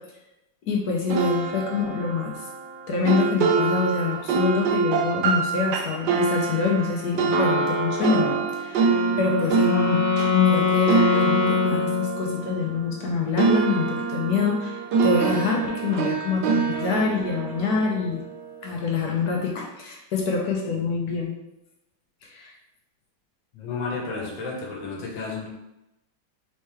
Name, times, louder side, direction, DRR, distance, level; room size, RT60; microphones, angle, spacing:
voice 1, 0.7-2.4 2.9-18.2 18.6-21.3 22.2-22.5 23.8-24.3, left 5 dB, 65° left, -1 dB, 1.1 m, -26 dB
sound 1, 1.1-13.1 13.4-18.6, right 5 dB, 80° right, 1.4 m, -25 dB
Wind instrument woodwind instrument, 8.7-12.7, left 5 dB, 50° left, 0.7 m, -24 dB
voice 2, 23.5-25.5, left 4 dB, 90° left, -2 dB, 1.7 m, -32 dB
4.3 x 3.1 x 3.4 m, 0.91 s
omnidirectional pair, 2.0 m